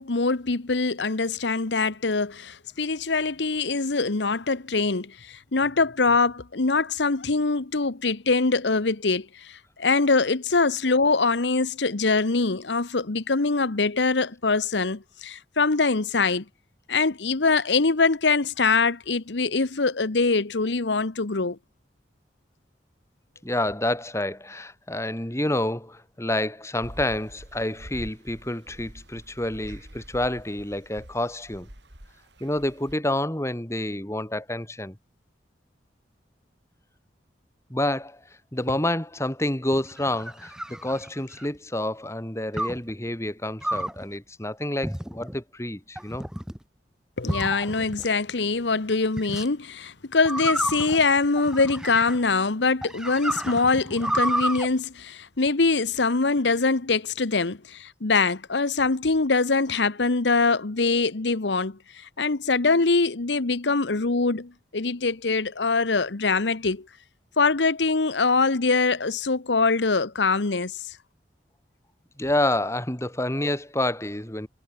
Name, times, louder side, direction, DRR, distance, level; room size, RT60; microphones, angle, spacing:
voice 1, 0.0-16.4 16.9-21.6 47.2-66.8 67.4-71.0, left 4 dB, 85° left, 1.1 m, -23 dB
voice 2, 23.4-31.7 32.4-35.0 37.7-38.2 38.5-46.3 72.2-74.5, left 1 dB, 15° left, 2.9 m, -28 dB
sound 1, 26.8-32.9, equal, 80° right, 5.1 m, -45 dB
sound 2, 39.7-41.6 42.6-42.9 43.6-44.0 44.8-45.4 46.0-46.6 47.3-48.1 49.2-49.5 50.3-52.3 52.8-54.7, right 1 dB, 5° right, 0.7 m, -30 dB
head